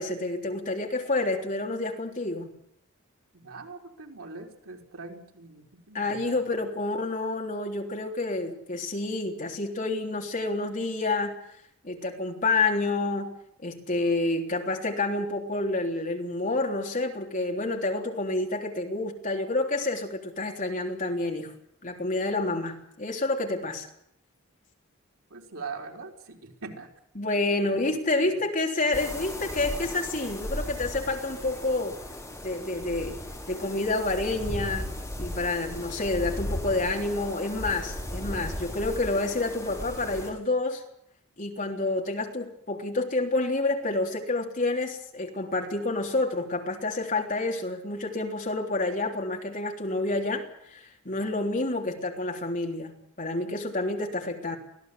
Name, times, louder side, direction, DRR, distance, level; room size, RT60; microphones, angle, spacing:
voice 1, 0.0-2.5 5.9-11.4 11.8-13.3 13.6-21.5 21.8-23.9 27.2-32.0 32.4-33.2 33.5-34.9 35.2-40.8 41.4-54.6, left 2 dB, 40° left, 2 dB, 3.5 m, -29 dB
voice 2, 3.3-6.4 25.3-26.9 27.6-27.8 28.2-28.3, right 4 dB, 90° right, 2 dB, 4.3 m, -42 dB
sound 1, 28.9-40.3, left 1 dB, 15° left, 5.5 m, -36 dB
24.5 x 16.5 x 8.4 m, 0.74 s
head